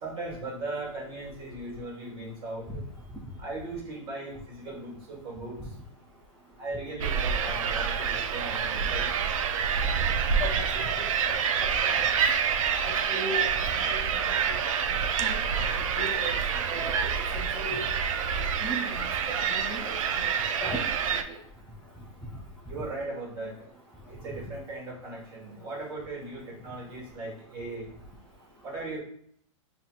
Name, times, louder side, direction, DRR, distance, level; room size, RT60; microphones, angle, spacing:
voice 1, 0.0-2.6 3.4-5.6 6.6-9.1 22.7-23.5 24.1-27.9 28.6-29.0, right 2 dB, 30° right, -2 dB, 1.6 m, -38 dB
sound 1, 7.0-21.2, right 7 dB, 85° right, 0.5 m, -27 dB
voice 2, 13.1-13.5 13.8-14.0 14.5-14.6 15.2-15.3 15.9-16.3 16.7-17.0 17.3-17.8 18.6-19.1 19.4-20.3 20.6-20.8, equal, 5° left, -6 dB, 0.5 m, -36 dB
5.7 x 2.7 x 2.4 m, 0.67 s
supercardioid pair, 165°, 17 cm